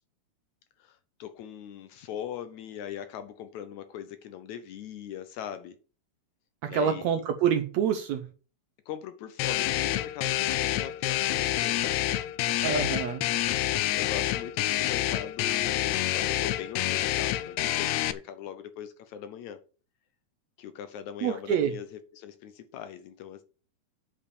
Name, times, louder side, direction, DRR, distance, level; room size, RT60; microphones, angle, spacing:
voice 1, 0.8-5.8 6.7-7.1 8.9-12.0 13.6-19.6 20.6-23.4, left 9 dB, 70° left, 1.9 m, -40 dB
voice 2, 6.6-8.3 12.6-13.2 21.2-21.7, right 7 dB, 75° right, 1.7 m, -27 dB
sound 1, 9.4-18.1, left 14 dB, 85° left, 1.6 m, -28 dB
8.5 x 5.3 x 6.9 m
omnidirectional pair, 3.8 m